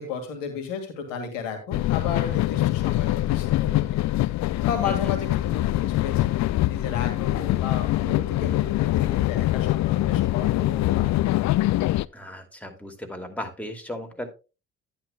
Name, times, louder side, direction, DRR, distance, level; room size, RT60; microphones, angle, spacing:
voice 1, 0.0-4.0 4.7-6.4 6.7-11.1, left 6 dB, 85° left, 5 dB, 2.2 m, -33 dB
sound 1, 1.7-12.1, left 16 dB, 50° left, 0.4 m, -24 dB
voice 2, 12.1-14.3, left 1 dB, 5° left, 3 dB, 2.6 m, -36 dB
11.5 x 10.5 x 2.3 m, 0.30 s
hypercardioid pair, 40°, 37 cm